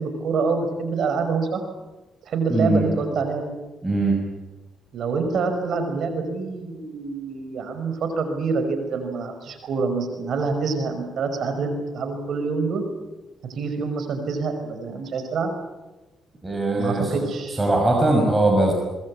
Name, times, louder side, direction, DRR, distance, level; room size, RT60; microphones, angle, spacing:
voice 1, 0.0-1.7 2.3-3.5 4.9-12.8 13.4-15.5 16.8-17.6, right 4 dB, 65° right, 7 dB, 5.5 m, -26 dB
voice 2, 2.5-2.8 3.8-4.2 16.4-17.1 17.6-18.7, right 2 dB, 20° right, 1 dB, 6.1 m, -20 dB
23.5 x 21.5 x 8.7 m, 1.1 s
cardioid pair, 90°, 0 cm